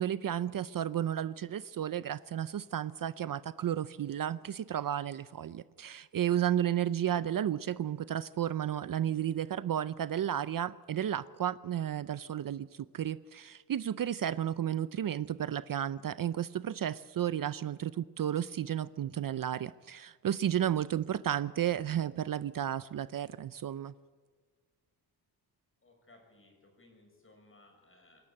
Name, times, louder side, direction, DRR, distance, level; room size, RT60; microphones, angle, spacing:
voice 1, 0.0-23.9, right 10 dB, 55° right, 16 dB, 0.5 m, -33 dB
voice 2, 25.8-28.2, left 2 dB, 30° left, 2 dB, 5.9 m, -61 dB
27.0 x 12.5 x 8.7 m, 1.6 s
wide cardioid pair, 170°, 40 cm